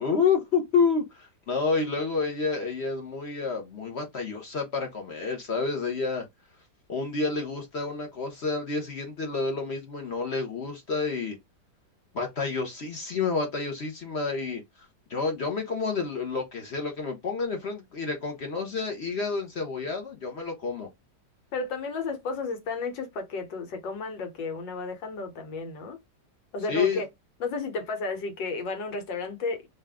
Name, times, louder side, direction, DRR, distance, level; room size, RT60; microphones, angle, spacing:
voice 1, 0.0-6.2 6.9-11.4 12.1-14.6 15.1-20.9 26.7-27.0, left 4 dB, 50° left, 0.8 m, -29 dB
voice 2, 21.5-26.0 26.5-27.1 27.4-29.7, left 3 dB, 80° left, 1.7 m, -33 dB
3.3 x 2.6 x 3.4 m
omnidirectional pair, 2.0 m